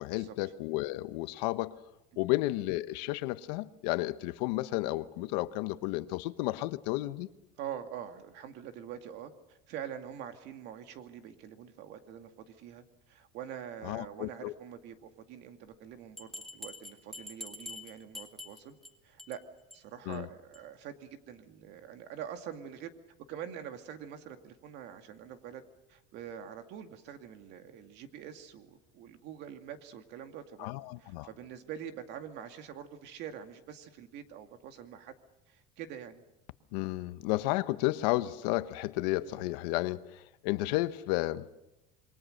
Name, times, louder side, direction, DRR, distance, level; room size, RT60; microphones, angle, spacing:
voice 1, 0.0-1.7 2.2-7.3 13.8-14.5 20.1-20.3 30.6-31.3 36.7-41.4, left 18 dB, 80° left, 1.1 m, -32 dB
voice 2, 7.6-18.8 19.0-19.4 19.7-22.9 23.3-25.6 25.9-30.7 31.0-35.2 35.5-36.2 39.2-39.5, right 9 dB, 55° right, 2.3 m, -45 dB
Bell, 16.2-18.9 19.2-19.4 19.7-19.8 20.1-20.2 20.5-20.6, left 2 dB, ahead, 2.7 m, -45 dB
27.0 x 23.0 x 6.6 m
cardioid pair, 150°, 21 cm